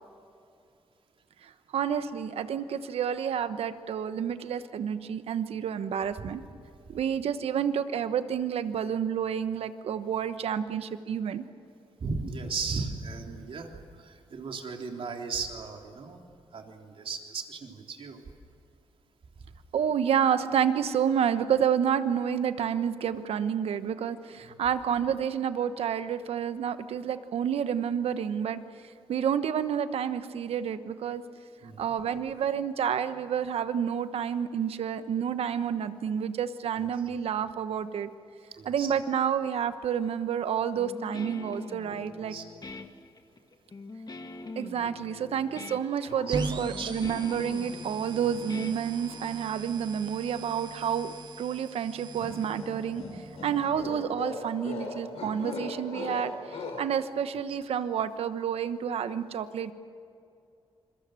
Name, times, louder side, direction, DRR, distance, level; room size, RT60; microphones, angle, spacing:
voice 1, 1.4-6.4 6.9-11.4 19.7-28.6 29.1-31.2 31.8-38.1 38.6-42.3 44.6-53.0 53.4-59.7, right 8 dB, 80° right, 11 dB, 1.1 m, -29 dB
voice 2, 12.0-16.2 16.5-18.2 24.4-24.5 31.6-31.9 36.8-36.9 38.6-38.9 42.3-42.5 46.3-47.0 57.5-57.6, right 4 dB, 65° right, 2 dB, 3.4 m, -36 dB
Guitar, 40.8-49.4, left 3 dB, 40° left, 1.8 m, -43 dB
sound 1, 46.1-46.7 47.0-47.8 48.2-49.4 52.2-56.8, left 3 dB, 85° left, 4.7 m, -40 dB
sound 2, 46.3-53.9, right 3 dB, 45° right, 1.8 m, -40 dB
27.5 x 22.5 x 7.6 m, 2.5 s
cardioid pair, 60°, 10 cm